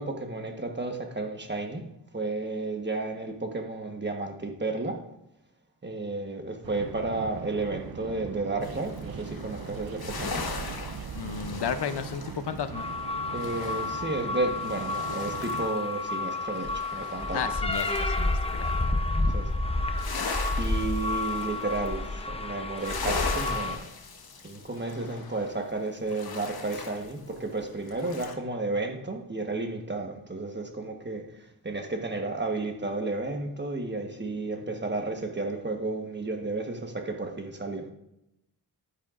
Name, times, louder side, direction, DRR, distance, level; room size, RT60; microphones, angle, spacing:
voice 1, 0.0-1.9 2.1-5.0 5.8-10.5 13.3-17.5 19.3-19.5 20.5-23.8 24.4-37.9, right 2 dB, 25° right, 4 dB, 1.2 m, -32 dB
sound 1, 6.6-15.7, right 7 dB, 65° right, 0.5 m, -40 dB
sound 2, 8.6-15.9 16.2-18.9 19.3-28.3, left 4 dB, 65° left, 1.0 m, -39 dB
voice 2, 11.1-12.8 17.3-18.7, left 7 dB, 80° left, 10 dB, 0.7 m, -33 dB
sound 3, 12.7-23.8, left 2 dB, 15° left, 0.6 m, -30 dB
10.5 x 9.0 x 2.5 m, 0.86 s
wide cardioid pair, 105°, 39 cm